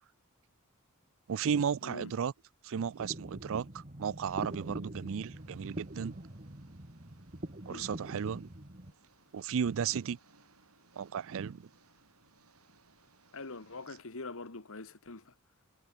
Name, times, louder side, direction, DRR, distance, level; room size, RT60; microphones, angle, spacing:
voice 1, 1.3-2.3 2.6-6.2 7.7-8.5 9.3-10.2 11.0-11.7, right 7 dB, 65° right, 0.4 m, -34 dB
sound 1, 3.0-8.9, right 1 dB, 35° right, 2.3 m, -44 dB
Engine, 5.3-14.0, right 3 dB, 85° right, 7.5 m, -66 dB
voice 2, 13.3-15.3, left 3 dB, 65° left, 1.9 m, -44 dB
head